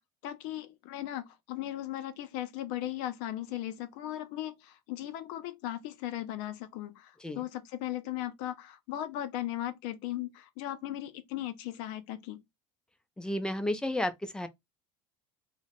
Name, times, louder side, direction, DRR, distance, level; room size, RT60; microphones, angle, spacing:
voice 1, 0.0-12.4, left 13 dB, 65° left, 0.5 m, -37 dB
voice 2, 13.2-14.5, left 1 dB, 5° left, 0.4 m, -32 dB
2.8 x 2.1 x 2.9 m
supercardioid pair, 135°, 14 cm